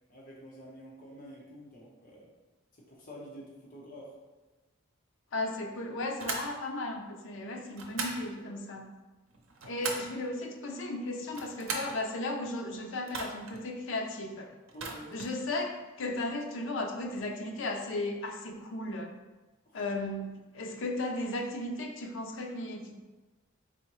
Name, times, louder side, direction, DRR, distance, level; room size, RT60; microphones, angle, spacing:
voice 1, 0.1-2.3 2.9-4.1 8.4-8.5 9.8-9.9 14.7-15.2 19.7-19.8, equal, 40° left, -4 dB, 0.9 m, -48 dB
voice 2, 5.3-8.9 9.6-14.5 15.1-19.2 19.7-22.9, left 2 dB, 65° left, 3 dB, 0.5 m, -35 dB
sound 1, 6.2-6.5 7.7-8.2 9.3-10.2 11.2-12.0 13.1-13.6 14.7-15.4, right 3 dB, 80° right, 0.7 m, -38 dB
4.2 x 3.6 x 3.0 m, 1.2 s
head